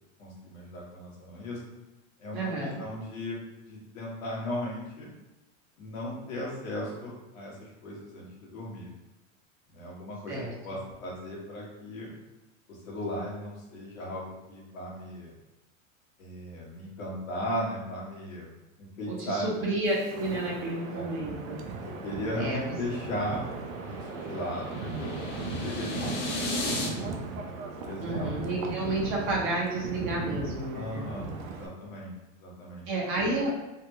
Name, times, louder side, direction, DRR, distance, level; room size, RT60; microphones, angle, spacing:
voice 1, 0.2-1.6 2.2-3.4 3.7-5.1 5.8-8.9 9.7-12.1 12.7-15.3 16.2-18.5 18.8-19.5 20.9-21.1 21.8-23.4 23.9-27.0 27.7-28.3 30.7-32.1 32.4-32.8, left 1 dB, 90° left, -4 dB, 1.5 m, -37 dB
voice 2, 2.3-2.8 10.3-10.5 19.1-21.6 22.4-22.6 28.0-31.0 32.9-33.6, right 2 dB, 30° right, -4 dB, 0.9 m, -31 dB
Wind, 19.8-31.7, right 4 dB, 85° right, 0.6 m, -38 dB
sound 1, 23.1-26.9, left 1 dB, 55° left, 1.2 m, -35 dB
3.4 x 2.3 x 2.8 m, 1.0 s
supercardioid pair, 135°, 40 cm